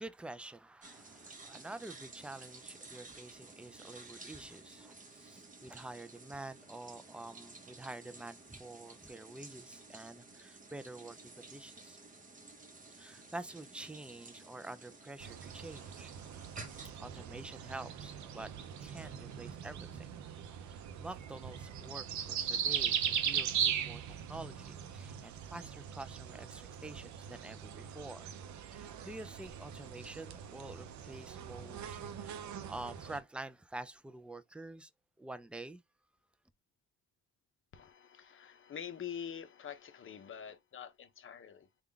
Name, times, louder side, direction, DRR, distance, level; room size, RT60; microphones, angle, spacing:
voice 1, 0.0-12.0 12.9-16.1 17.0-18.5 18.8-20.1 20.6-28.3 28.6-34.9 35.2-35.8, right 2 dB, 5° right, 0.3 m, -48 dB
sound 1, 0.8-19.8, right 3 dB, 25° right, 0.9 m, -54 dB
sound 2, 15.2-33.2, right 8 dB, 70° right, 0.6 m, -39 dB
voice 2, 37.7-41.7, left 8 dB, 45° left, 0.7 m, -46 dB
3.6 x 2.4 x 3.3 m
cardioid pair, 90°, 30 cm